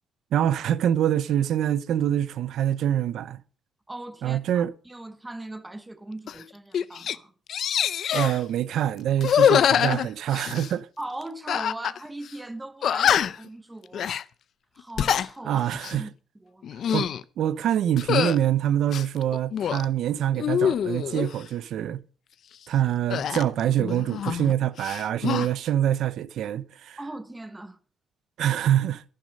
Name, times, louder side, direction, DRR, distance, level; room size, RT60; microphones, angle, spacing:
voice 1, 0.3-3.4 4.2-4.7 8.1-10.9 15.4-16.1 16.9-17.1 17.4-22.0 22.7-27.0 28.4-29.0, right 11 dB, 75° right, 0.6 m, -25 dB
voice 2, 3.9-7.3 9.5-9.9 11.0-14.1 14.7-15.6 16.0-16.1 16.4-16.6 27.0-27.8, right 1 dB, 15° right, 1.1 m, -39 dB
sound 1, 6.3-6.4 6.7-7.2 7.5-8.4 9.2-10.7 11.5-12.0 12.3-12.4 12.8-13.5 13.9-14.2 14.8-15.3 15.7-16.0 16.6-17.2 18.0-18.4 18.9-19.9 20.4-21.3 23.1-24.5 24.8-25.5, left 9 dB, 65° left, 0.5 m, -24 dB
11.5 x 10.5 x 5.3 m
cardioid pair, 90°, 0 cm